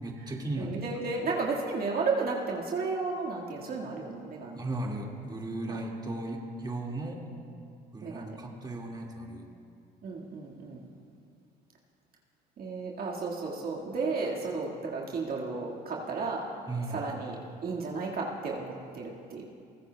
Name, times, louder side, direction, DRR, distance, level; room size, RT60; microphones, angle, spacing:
voice 1, 0.0-0.8 4.5-7.2 7.9-9.4 16.7-17.0, right 2 dB, 20° right, -1 dB, 2.1 m, -36 dB
voice 2, 0.6-4.6 5.7-5.8 8.0-8.4 10.0-10.9 12.6-16.4 16.9-17.4 17.6-19.4, right 4 dB, 50° right, -3 dB, 2.0 m, -33 dB
22.0 x 15.5 x 2.3 m, 2.4 s
hypercardioid pair, 65°, 20 cm